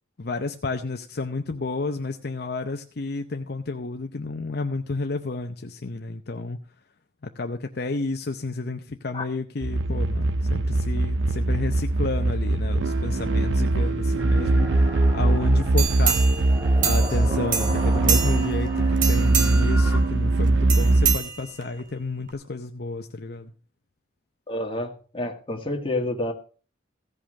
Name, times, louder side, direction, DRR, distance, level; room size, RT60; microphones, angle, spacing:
voice 1, 0.2-6.6 7.2-16.2 16.8-23.5, left 3 dB, 60° left, 6 dB, 0.7 m, -31 dB
sound 1, 9.6-21.2, right 2 dB, 90° right, 0.6 m, -21 dB
sound 2, 14.2-20.0, equal, 15° right, 3.4 m, -37 dB
sound 3, 15.8-17.2 17.5-18.6 19.0-19.8 20.7-21.8 22.3-22.4, right 7 dB, 45° right, 1.4 m, -26 dB
voice 2, 24.5-26.3, left 1 dB, 30° left, 3 dB, 1.9 m, -29 dB
16.0 x 5.6 x 6.3 m, 0.39 s
head